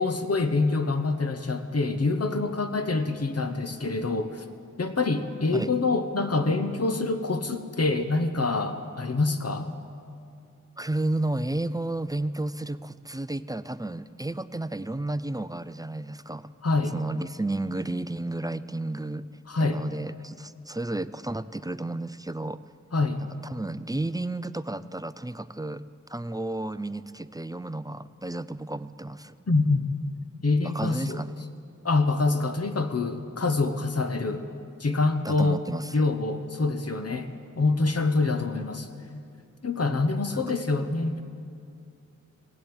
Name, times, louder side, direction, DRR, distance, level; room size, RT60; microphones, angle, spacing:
voice 1, 0.0-4.4 4.8-9.7 16.6-16.9 19.5-19.8 22.9-23.2 29.5-29.9 30.4-31.2 31.8-34.4 34.8-35.6 35.9-37.3 37.6-38.9 39.6-41.2, left 3 dB, 50° left, 8 dB, 1.0 m, -26 dB
voice 2, 10.8-16.5 16.9-19.3 19.6-22.6 23.4-29.4 30.6-31.5 35.2-36.1 40.5-40.6, right 2 dB, 10° right, 14 dB, 0.3 m, -32 dB
17.5 x 7.8 x 8.7 m, 2.4 s
wide cardioid pair, 70°, 32 cm